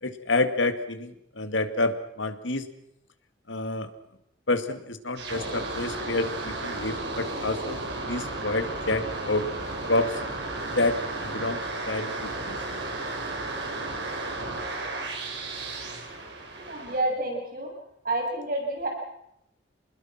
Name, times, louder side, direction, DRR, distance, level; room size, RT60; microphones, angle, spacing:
voice 1, 0.0-2.7 3.5-3.9 4.5-7.8 8.1-9.5 9.9-10.2 10.7-12.6, left 2 dB, 80° left, 9 dB, 2.4 m, -28 dB
sound 1, 5.2-17.0, right 2 dB, 65° right, 5.9 m, -34 dB
voice 2, 16.6-17.7 18.0-18.9, right 2 dB, 50° right, 1 dB, 7.1 m, -29 dB
29.0 x 21.0 x 6.0 m, 0.77 s
head